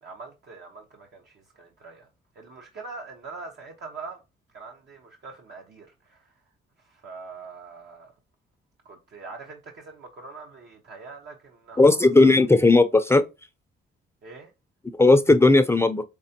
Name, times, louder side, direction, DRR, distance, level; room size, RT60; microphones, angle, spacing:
voice 1, 0.0-2.1 2.3-4.2 4.5-6.4 6.8-8.1 8.8-12.5 14.2-14.5, right 4 dB, 60° right, 1.0 m, -43 dB
voice 2, 11.8-13.2 15.0-16.0, left 2 dB, 15° left, 0.5 m, -16 dB
5.2 x 3.4 x 2.8 m
cardioid pair, 90°, 20 cm